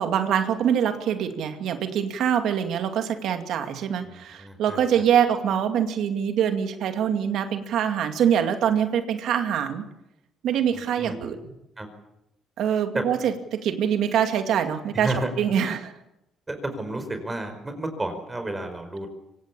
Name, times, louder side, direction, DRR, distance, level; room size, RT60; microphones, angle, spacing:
voice 1, 0.0-9.8 10.4-11.5 12.6-15.9, right 8 dB, 75° right, 7 dB, 2.3 m, -24 dB
voice 2, 4.0-4.8 10.7-11.1 11.8-11.9 12.9-13.0 14.9-15.3 15.6-15.8 16.5-19.1, right 2 dB, 15° right, 7 dB, 4.9 m, -31 dB
24.5 x 17.5 x 8.5 m, 0.88 s
cardioid pair, 110°, 0 cm